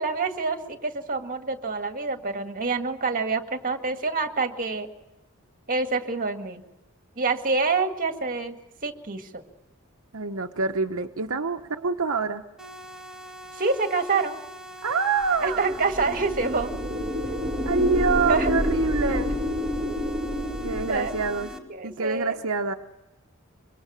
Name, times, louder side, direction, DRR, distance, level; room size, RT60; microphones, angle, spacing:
voice 1, 0.0-4.9 5.7-6.6 7.2-8.6 8.8-9.4 13.5-14.4 15.4-16.7 18.3-18.5 19.1-19.2 20.9-21.1 21.7-22.4, right 4 dB, 40° right, 6 dB, 1.9 m, -27 dB
voice 2, 10.1-12.4 14.8-15.7 17.7-19.3 20.6-21.6 21.8-22.7, right 4 dB, 65° right, 5 dB, 0.9 m, -26 dB
sound 1, 12.6-21.6, equal, 5° right, 2.5 m, -43 dB
sound 2, 15.5-21.6, left 1 dB, 25° right, 2.5 m, -29 dB
25.0 x 23.5 x 6.3 m, 1.0 s
head